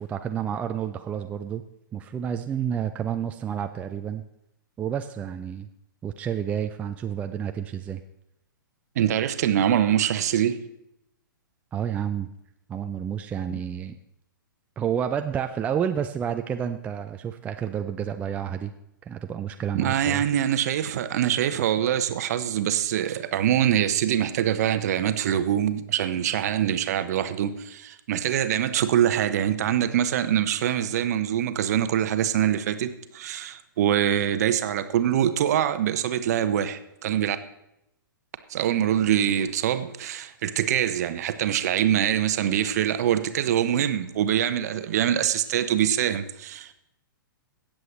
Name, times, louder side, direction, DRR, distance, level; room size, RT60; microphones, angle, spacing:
voice 1, 0.0-1.6 1.9-4.2 4.8-5.7 6.0-8.0 11.7-12.3 12.7-14.0 14.8-18.7 19.1-20.2, right 8 dB, 10° right, 7 dB, 0.4 m, -30 dB
voice 2, 9.0-10.6 13.5-13.6 19.7-37.4 38.5-46.7, right 10 dB, 50° right, 11 dB, 0.8 m, -24 dB
17.0 x 7.6 x 3.1 m, 0.83 s
figure-of-eight pair, 115°, 11 cm